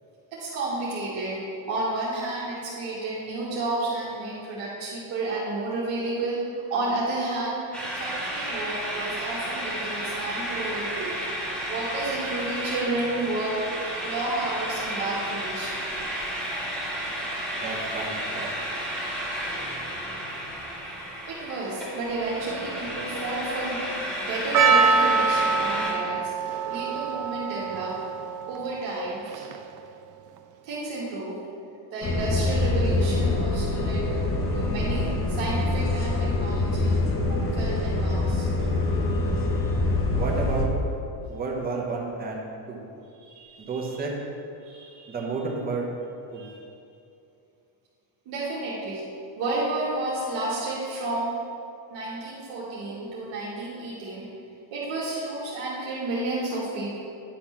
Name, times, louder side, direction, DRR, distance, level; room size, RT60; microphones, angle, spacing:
voice 1, 0.3-1.4 1.7-6.4 6.7-7.6 8.0-11.2 11.7-13.6 14.0-15.9 21.3-23.9 24.3-26.3 26.7-28.0 28.5-29.4 30.6-31.4 31.9-34.0 34.5-38.5 39.1-39.8 43.2-44.0 44.6-45.3 46.3-46.6 48.3-49.0 49.4-51.3 51.9-54.3 54.7-57.0, right 2 dB, 60° right, -7 dB, 1.8 m, -31 dB
sound 1, 7.7-25.9, equal, ahead, 1.7 m, -32 dB
voice 2, 17.6-18.5 40.1-40.8 41.3-42.4 42.7-42.9 43.7-44.2 45.1-45.9 46.3-46.5, right 3 dB, 20° right, -2 dB, 1.0 m, -31 dB
Percussion, 24.5-29.8, right 5 dB, 40° right, 0.5 m, -25 dB
sound 2, 32.0-40.7, left 2 dB, 25° left, 0.7 m, -25 dB
10.0 x 3.6 x 5.8 m, 2.6 s
cardioid pair, 160°, 49 cm